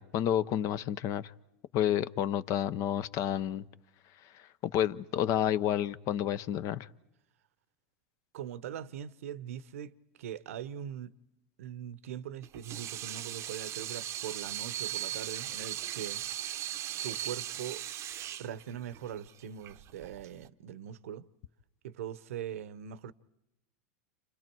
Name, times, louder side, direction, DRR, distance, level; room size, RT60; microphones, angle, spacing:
voice 1, 0.0-1.3 1.7-3.6 4.3-6.9, left 10 dB, 45° left, 0.8 m, -30 dB
voice 2, 8.3-11.2 11.6-16.2 17.0-17.8 18.4-21.3 21.8-23.1, right 9 dB, 80° right, 0.9 m, -41 dB
Water tap faucet / Sink (filling or washing), 12.4-20.5, right 12 dB, 40° right, 0.8 m, -38 dB
29.5 x 27.5 x 4.6 m
hypercardioid pair, 110°, 7 cm